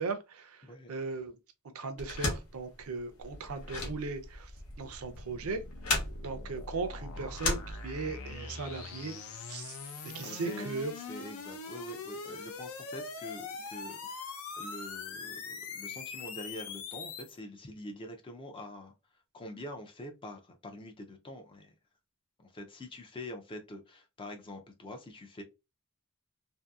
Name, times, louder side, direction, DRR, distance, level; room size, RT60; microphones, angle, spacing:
voice 1, 0.0-1.3 1.7-4.5 4.8-5.6 6.2-9.2 9.5-9.8 10.0-10.9, right 4 dB, 70° right, 0.5 m, -37 dB
sound 1, 2.0-8.3, left 3 dB, 90° left, 1.0 m, -36 dB
sound 2, 3.2-17.4, left 4 dB, 75° left, 0.5 m, -43 dB
voice 2, 10.2-18.9 19.3-21.7 22.4-25.4, left 1 dB, 25° left, 0.4 m, -45 dB
2.7 x 2.5 x 2.3 m
head